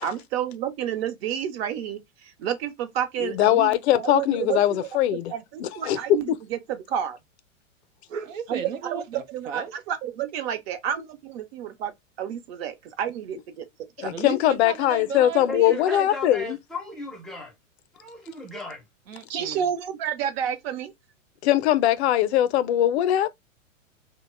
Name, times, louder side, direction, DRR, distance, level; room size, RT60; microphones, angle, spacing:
voice 1, 0.0-7.2 8.5-8.6 8.9-11.9 12.2-13.7 14.0-14.1 19.3-20.9, right 9 dB, 50° right, 0.7 m, -30 dB
voice 2, 3.2-5.3 5.6-6.0 14.0-16.6 21.4-23.3, left 13 dB, 55° left, 0.5 m, -21 dB
voice 3, 8.1-9.7 14.1-16.1 19.1-19.6, right 7 dB, 80° right, 0.7 m, -35 dB
voice 4, 15.5-17.5 17.9-18.8, left 2 dB, ahead, 0.5 m, -36 dB
2.8 x 2.1 x 3.0 m
hypercardioid pair, 115°, 39 cm